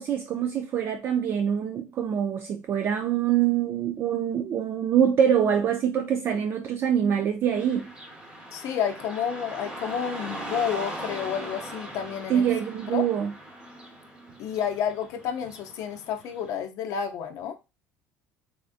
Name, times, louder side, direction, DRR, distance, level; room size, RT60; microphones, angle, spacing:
voice 1, 0.0-7.9 12.3-13.3, right 9 dB, 40° right, 0.4 m, -24 dB
Car passing by / Traffic noise roadway noise, 7.5-16.5, right 1 dB, 15° right, 0.9 m, -40 dB
voice 2, 8.5-12.5 12.9-13.1 14.4-17.6, left 8 dB, 60° left, 0.5 m, -30 dB
3.5 x 2.5 x 2.4 m
cardioid pair, 130°, 6 cm